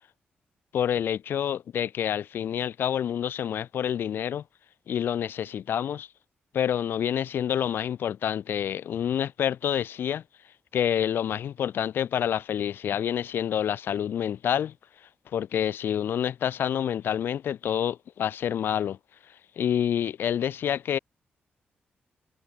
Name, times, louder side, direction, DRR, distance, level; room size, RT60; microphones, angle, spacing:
voice 1, 0.7-4.4 4.9-6.1 6.5-10.2 10.7-14.7 15.3-19.0 19.6-21.0, left 9 dB, 80° left, 4.1 m, -28 dB
wide cardioid pair, 160°, 4 cm